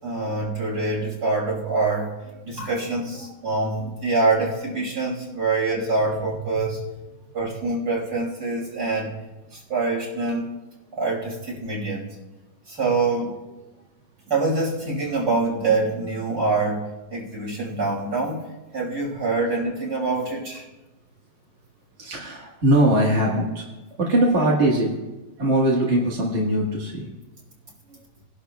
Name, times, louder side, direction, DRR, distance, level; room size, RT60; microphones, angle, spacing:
voice 1, 0.0-2.2 2.4-6.9 7.3-9.1 9.5-10.4 10.9-12.1 12.7-13.4 14.3-18.4 18.7-20.7, right 3 dB, 50° right, -4 dB, 5.8 m, -25 dB
voice 2, 3.2-3.5 3.8-3.9 22.0-23.7 24.0-24.9 25.4-27.1 27.9-28.0, right 1 dB, 35° right, -4 dB, 1.7 m, -22 dB
21.5 x 11.5 x 2.3 m, 1.1 s
omnidirectional pair, 2.3 m